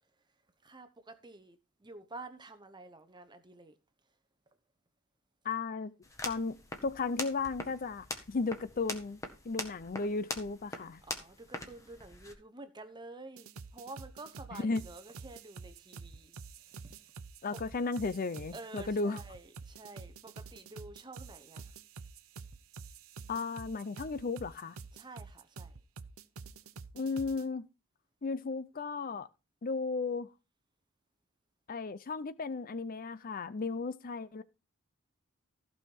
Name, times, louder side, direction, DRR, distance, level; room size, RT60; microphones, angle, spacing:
voice 1, 0.6-3.8 11.1-13.5 13.7-16.4 16.8-16.9 17.5-17.6 18.5-21.6 24.9-25.7, right 2 dB, 20° right, 0.9 m, -49 dB
voice 2, 5.4-5.9 6.2-11.0 14.5-14.8 17.4-19.2 23.3-24.8 26.9-27.7 28.2-29.3 29.6-30.3 31.7-34.4, left 4 dB, 40° left, 0.5 m, -35 dB
sound 1, 6.0-12.3, left 2 dB, 15° left, 1.6 m, -43 dB
sound 2, 13.4-27.4, right 4 dB, 80° right, 0.8 m, -48 dB
15.0 x 5.6 x 4.6 m
head